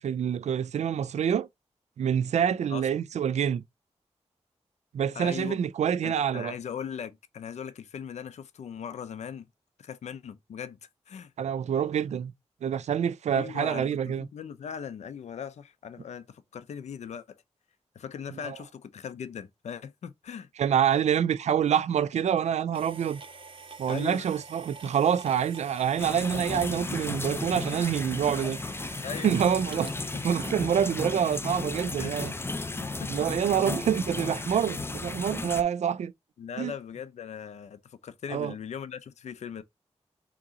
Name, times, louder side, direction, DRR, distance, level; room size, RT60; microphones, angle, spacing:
voice 1, 0.0-1.5 2.0-3.6 4.9-6.5 11.4-12.3 12.6-14.3 18.4-18.6 20.6-23.2 23.8-28.6 29.2-29.9 30.2-32.3 33.1-36.1 36.6-36.7 38.3-38.5, right 8 dB, 90° right, 0.4 m, -26 dB
voice 2, 5.1-5.5 6.0-9.5 9.8-10.8 11.1-11.3 13.3-17.2 18.0-20.5 23.9-24.4 26.8-26.9 29.0-29.3 32.0-32.2 32.8-33.1 36.4-39.6, left 7 dB, 85° left, 0.5 m, -39 dB
sound 1, 22.7-31.6, right 4 dB, 50° right, 0.9 m, -47 dB
sound 2, 26.0-35.6, left 3 dB, 20° left, 0.5 m, -34 dB
3.6 x 2.9 x 3.6 m
cardioid pair, 70°, 11 cm